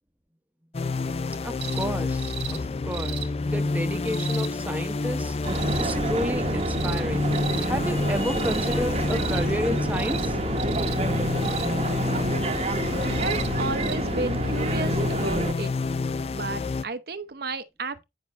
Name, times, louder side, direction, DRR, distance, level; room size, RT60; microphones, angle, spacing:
sound 1, 0.7-16.8, left 3 dB, 35° left, 0.4 m, -29 dB
voice 1, 1.4-5.4 5.8-7.3 7.6-10.4, equal, 10° right, 0.9 m, -32 dB
sound 2, 1.6-1.9 2.2-2.6 2.9-3.3 4.0-4.5 5.4-5.9 6.6-7.0 7.3-7.7 8.3-8.8 9.1-9.4 9.9-10.3 10.6-11.0 11.4-11.7 13.0-13.5 13.8-14.0 15.0-15.1, right 11 dB, 80° right, 1.3 m, -36 dB
sound 3, 5.4-15.5, right 2 dB, 35° right, 1.0 m, -28 dB
voice 2, 13.0-15.7 16.3-18.0, right 3 dB, 55° right, 0.8 m, -32 dB
9.4 x 5.9 x 4.1 m
head